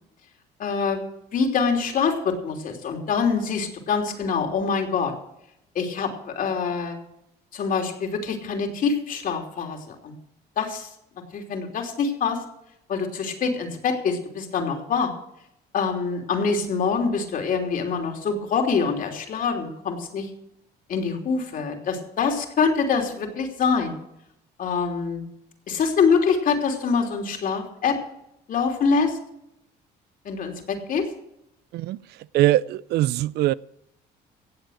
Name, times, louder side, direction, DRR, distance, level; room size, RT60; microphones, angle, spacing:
voice 1, 0.6-1.0 1.3-5.1 5.7-7.0 7.5-10.1 10.6-10.9 11.3-12.4 12.9-15.1 15.7-20.3 20.9-23.9 24.6-25.2 25.7-28.0 28.5-29.2 30.2-31.1, left 5 dB, 55° left, 3.1 m, -25 dB
voice 2, 32.3-33.5, right 15 dB, 75° right, 0.5 m, -21 dB
17.0 x 7.6 x 6.5 m
cardioid pair, 110°, 17 cm